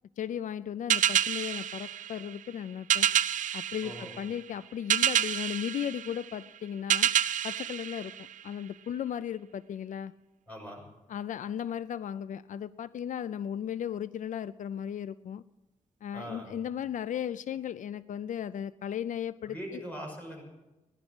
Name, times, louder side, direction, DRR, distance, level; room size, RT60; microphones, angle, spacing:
voice 1, 0.2-3.1 3.5-3.9 4.2-7.1 7.4-8.1 8.4-10.1 11.1-15.4 16.0-19.8, left 9 dB, 80° left, 16 dB, 0.4 m, -36 dB
sound 1, 0.9-8.8, right 9 dB, 80° right, 0.5 m, -29 dB
voice 2, 10.5-10.8 16.1-16.5 19.5-20.4, equal, 10° left, -1 dB, 5.9 m, -41 dB
16.5 x 11.0 x 6.1 m, 1.0 s
wide cardioid pair, 110°, 13 cm